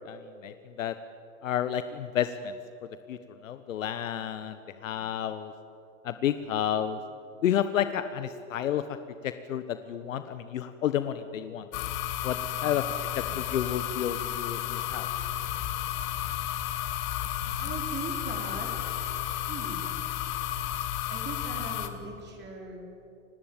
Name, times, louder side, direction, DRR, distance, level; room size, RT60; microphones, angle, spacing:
voice 1, 0.0-0.9 1.4-2.5 3.1-3.2 3.4-5.5 6.0-7.0 7.4-8.8 9.2-11.6 12.2-12.8 13.2-15.1, left 10 dB, 75° left, 11 dB, 1.2 m, -30 dB
sound 1, 11.7-21.9, left 12 dB, 50° left, 2.2 m, -32 dB
voice 2, 13.2-13.8 15.9-16.5 17.6-20.0 21.1-22.8, right 4 dB, 25° right, 0 dB, 5.0 m, -42 dB
30.0 x 17.5 x 9.1 m, 2.9 s
hypercardioid pair, 110°, 39 cm